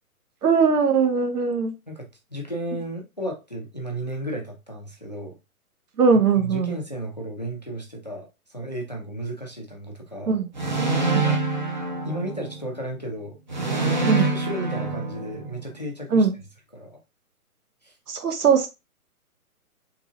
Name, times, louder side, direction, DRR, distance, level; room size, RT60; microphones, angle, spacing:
voice 1, 0.4-1.7 6.0-6.8 10.3-10.5 11.1-11.2 14.0-14.3 16.1-16.3 18.1-18.7, right 5 dB, 80° right, 1.0 m, -20 dB
voice 2, 1.9-5.4 6.1-10.3 11.1-11.4 12.0-13.4 13.7-16.3 16.7-17.0 17.8-17.9, right 1 dB, 30° left, 0.4 m, -34 dB
sound 1, 10.6-12.7 13.5-15.7, right 3 dB, 35° right, 0.4 m, -25 dB
3.7 x 2.9 x 2.4 m
hypercardioid pair, 160°, 45 cm